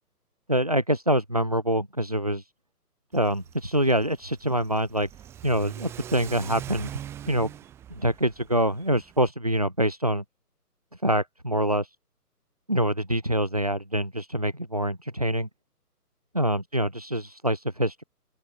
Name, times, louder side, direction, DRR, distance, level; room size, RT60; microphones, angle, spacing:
voice 1, 0.5-2.5 3.1-5.1 5.4-6.9 7.3-7.5 7.9-10.2 10.9-12.0 12.7-15.5 16.3-18.0, right 1 dB, 25° right, 0.7 m, -25 dB
Car / Accelerating revving vroom, 3.1-9.3, right 10 dB, 5° right, 2.6 m, -43 dB
open air
hypercardioid pair, 170°, 48 cm